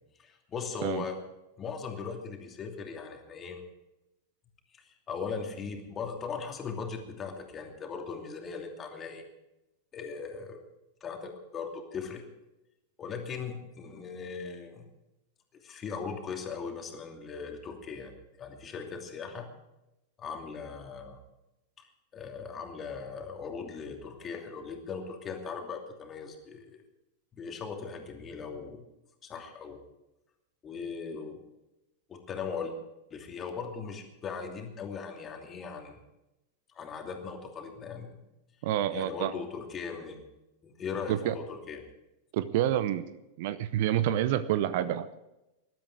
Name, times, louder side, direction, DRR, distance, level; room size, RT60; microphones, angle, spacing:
voice 1, 0.2-1.2 1.6-3.6 4.7-9.2 9.9-10.6 11.0-12.2 13.0-14.9 15.6-19.5 20.2-21.2 22.1-26.8 27.4-28.8 29.2-29.8 30.6-31.4 32.1-32.7 33.1-36.0 36.7-38.2 38.9-40.2 40.6-41.8, left 5 dB, 25° left, 3 dB, 2.7 m, -39 dB
voice 2, 38.6-39.3 41.1-41.3 42.3-43.1 43.4-45.2, right 12 dB, 50° right, 15 dB, 0.7 m, -28 dB
19.5 x 12.5 x 4.8 m, 0.95 s
figure-of-eight pair, 90°, 0 cm